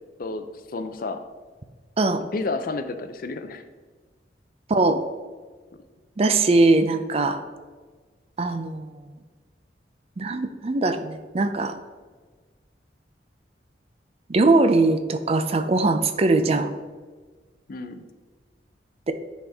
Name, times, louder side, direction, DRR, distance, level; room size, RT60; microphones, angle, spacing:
voice 1, 0.7-1.2 2.3-3.6 17.7-18.0, left 3 dB, 55° left, 9 dB, 0.5 m, -30 dB
voice 2, 4.7-5.0 6.2-7.4 8.4-9.1 10.2-11.8 14.3-16.7 19.1-19.2, right 2 dB, 35° right, 9 dB, 0.4 m, -21 dB
9.8 x 4.2 x 3.5 m, 1.4 s
head